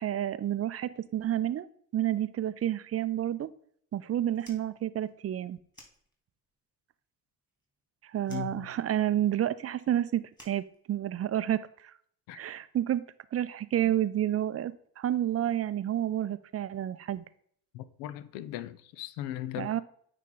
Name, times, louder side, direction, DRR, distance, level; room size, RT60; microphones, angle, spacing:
voice 1, 0.0-1.7 1.9-3.5 3.9-5.6 8.0-11.9 12.3-13.0 13.3-17.2 19.6-19.8, right 11 dB, 35° right, 0.5 m, -30 dB
Fire, 4.3-6.6 6.9-7.9 8.2-11.4, equal, 10° left, 2.5 m, -57 dB
voice 2, 8.3-8.7 12.3-12.4 13.8-13.9 17.7-19.8, left 12 dB, 75° left, 0.6 m, -38 dB
9.0 x 3.3 x 3.8 m
hypercardioid pair, 50°, 44 cm